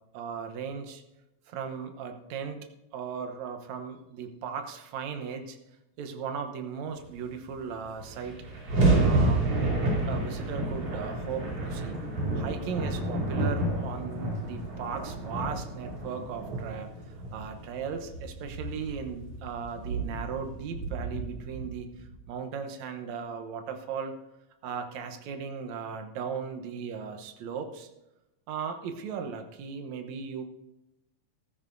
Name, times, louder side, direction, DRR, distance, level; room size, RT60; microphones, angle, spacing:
voice 1, 0.1-1.0 1.5-2.7 2.9-5.6 6.0-8.4 9.0-9.5 10.1-12.0 12.3-16.9 17.3-24.1 24.6-27.9 28.5-30.4, right 6 dB, 70° right, 6 dB, 2.2 m, -37 dB
sound 1, 7.5-7.6 7.8-22.2, right 2 dB, 55° right, 4.1 m, -30 dB
14.5 x 14.0 x 2.6 m, 0.91 s
omnidirectional pair, 3.4 m